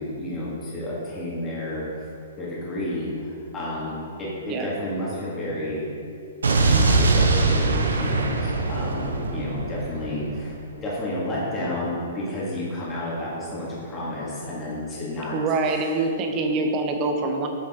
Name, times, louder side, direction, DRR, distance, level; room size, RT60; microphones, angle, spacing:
voice 1, 0.0-1.9 2.4-5.9 6.6-10.5 10.8-15.3 15.6-15.9, left 1 dB, 20° left, -7 dB, 1.8 m, -31 dB
Explosion, 6.4-10.5, right 3 dB, 75° right, 0.7 m, -22 dB
voice 2, 15.3-17.5, right 3 dB, 30° right, 4 dB, 0.9 m, -25 dB
8.4 x 6.0 x 3.7 m, 2.6 s
figure-of-eight pair, 115°, 0 cm